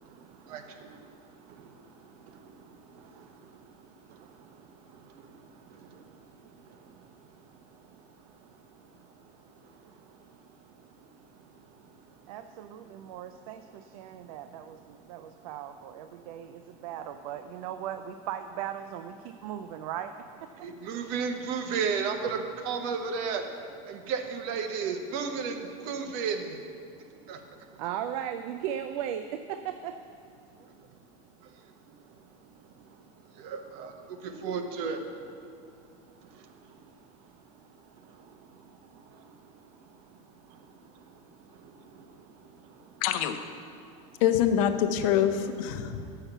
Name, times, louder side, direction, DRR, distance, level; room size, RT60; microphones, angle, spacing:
voice 1, 0.0-12.3 12.9-13.4 14.0-15.5 16.2-16.7 20.5-27.8 30.5-30.9 31.4-43.0 43.7-44.2 45.8-46.2, right 5 dB, 55° right, 0.8 m, -39 dB
voice 2, 12.3-20.1 27.8-29.9, right 10 dB, 75° right, 0.4 m, -37 dB
voice 3, 43.0-43.4 44.2-46.0, left 10 dB, 65° left, 0.7 m, -25 dB
7.2 x 5.7 x 6.7 m
supercardioid pair, 150°, 19 cm